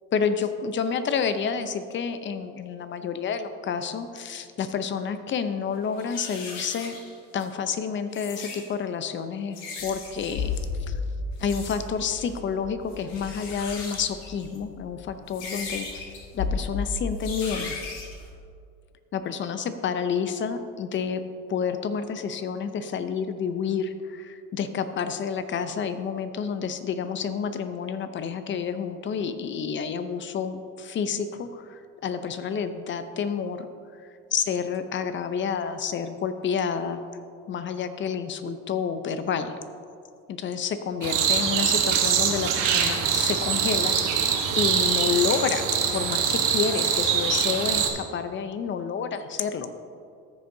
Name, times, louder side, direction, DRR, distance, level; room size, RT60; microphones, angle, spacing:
voice 1, 0.1-7.0 7.3-10.5 10.9-11.0 11.4-16.1 16.3-17.7 19.1-21.2 21.5-33.7 34.3-37.0 37.5-39.5 40.3-43.9 44.5-49.7, left 6 dB, 40° left, 10 dB, 0.6 m, -29 dB
sound 1, 5.4-5.5 5.9-7.4 8.0-8.7 9.5-10.7 11.4-11.8 12.1-12.4 12.9-14.6 15.3-16.2 17.1-18.2, left 4 dB, 90° left, 1.7 m, -39 dB
sound 2, 9.8-18.3, left 4 dB, 60° left, 1.4 m, -34 dB
sound 3, 41.0-47.9, right 7 dB, 75° right, 1.3 m, -24 dB
14.5 x 6.6 x 2.7 m, 2.4 s
cardioid pair, 110°, 31 cm